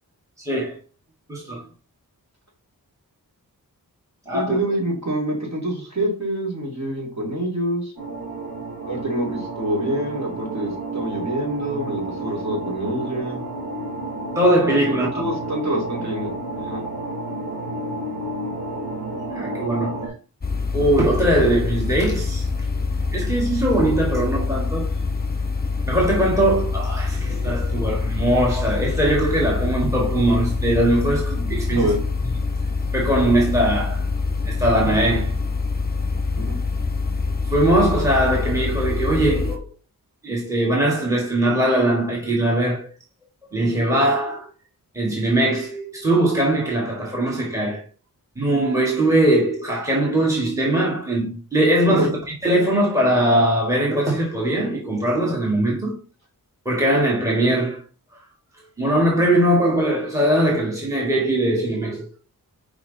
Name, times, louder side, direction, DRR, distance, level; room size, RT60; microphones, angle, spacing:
voice 1, 0.4-0.8 1.3-1.6 4.2-4.6 14.3-15.2 19.3-19.9 20.7-22.5 23.1-24.9 25.9-31.9 32.9-34.0 34.4-35.3 37.5-39.7 40.2-42.9 43.5-44.5 44.9-47.8 48.3-52.1 52.4-55.9 56.6-57.8 58.8-62.1, right 1 dB, 10° right, 1.8 m, -20 dB
voice 2, 4.3-7.9 8.9-13.4 15.1-16.3 16.6-16.8 31.7-32.0 36.4-36.6 52.0-52.1, right 1 dB, 45° right, 2.9 m, -26 dB
sound 1, 8.0-20.1, right 2 dB, 70° right, 3.1 m, -31 dB
sound 2, 20.4-39.6, left 4 dB, 25° left, 1.2 m, -25 dB
6.0 x 5.1 x 4.0 m
wide cardioid pair, 130°, 37 cm